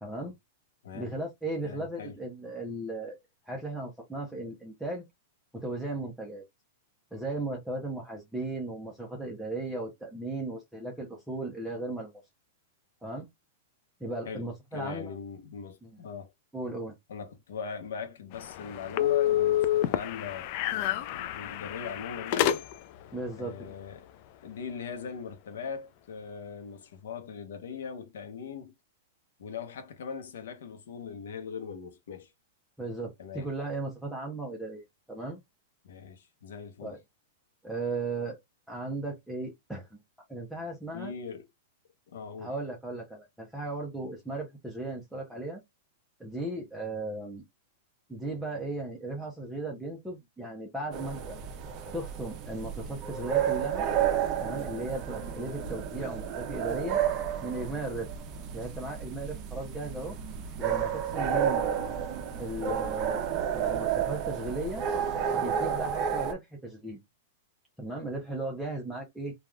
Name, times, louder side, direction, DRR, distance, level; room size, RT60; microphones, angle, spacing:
voice 1, 0.0-0.3 0.9-3.2 3.4-5.1 5.5-6.4 7.1-12.2 13.0-13.3 14.0-15.1 15.8-16.0 16.5-16.9 23.1-23.5 32.8-35.4 36.8-37.0 37.6-38.4 38.7-40.0 40.3-41.1 42.4-45.6 46.2-47.4 48.1-51.4 51.9-53.9 54.4-57.0 57.4-58.1 58.5-60.2 60.6-61.7 62.4-63.2 63.5-64.8 65.3-67.0 67.8-69.3, right 2 dB, ahead, 0.7 m, -36 dB
voice 2, 0.8-1.1 1.5-2.1 14.2-14.4 14.7-16.3 17.1-24.1 24.4-28.7 29.4-32.3 33.2-33.5 35.8-37.0 40.9-41.5 42.1-42.5, left 6 dB, 80° left, 0.8 m, -40 dB
sound 1, 18.3-23.0, left 12 dB, 50° left, 0.3 m, -28 dB
sound 2, 50.9-66.3, right 9 dB, 35° right, 0.6 m, -31 dB
sound 3, 52.5-65.2, right 4 dB, 20° right, 1.2 m, -47 dB
3.4 x 2.3 x 2.2 m
hypercardioid pair, 135°, 0 cm